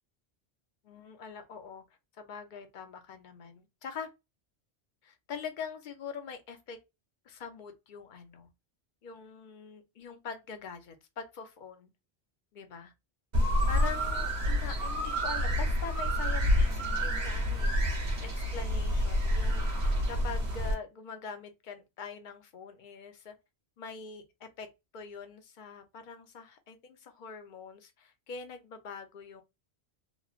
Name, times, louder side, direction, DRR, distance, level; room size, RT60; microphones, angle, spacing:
voice 1, 0.8-1.8 2.2-4.1 5.0-6.8 7.3-8.5 9.0-11.9 12.5-12.9 13.7-23.4 23.8-29.4, left 6 dB, 55° left, 0.6 m, -44 dB
sound 1, 13.3-20.7, equal, 65° right, 1.0 m, -28 dB
3.0 x 2.0 x 2.3 m
omnidirectional pair, 1.1 m